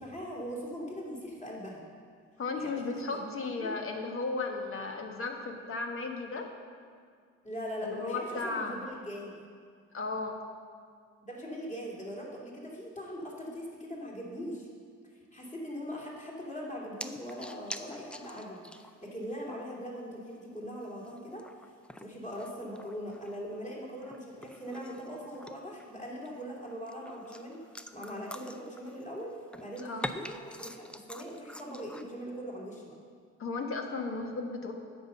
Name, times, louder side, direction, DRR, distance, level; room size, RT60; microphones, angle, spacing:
voice 1, 0.0-1.8 2.6-3.2 3.6-3.7 7.4-9.4 11.2-14.7 15.1-21.5 22.0-27.6 27.9-29.3 29.6-32.9, equal, 25° left, -4 dB, 2.7 m, -41 dB
voice 2, 2.4-6.5 7.8-8.8 9.9-10.4 29.8-30.1 33.4-34.7, left 3 dB, 45° left, 3 dB, 1.3 m, -35 dB
sound 1, 17.0-19.1 19.4-19.5 19.9-20.0 20.6-23.4 23.7-25.9 26.2-29.2 29.5-32.0, left 1 dB, 5° left, 0.4 m, -45 dB
9.2 x 5.5 x 6.9 m, 2.1 s
cardioid pair, 90°, 30 cm